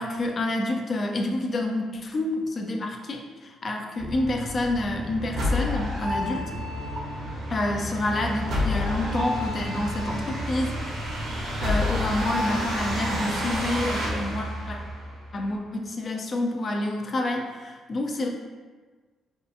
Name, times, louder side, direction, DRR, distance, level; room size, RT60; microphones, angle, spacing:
voice 1, 0.0-6.5 7.5-11.0 11.6-14.8 15.3-18.3, left 1 dB, 45° left, 2 dB, 0.4 m, -28 dB
sound 1, 4.0-15.5, left 1 dB, 70° right, 0.6 m, -29 dB
2.7 x 2.3 x 2.5 m, 1.4 s
cardioid pair, 90°, 0 cm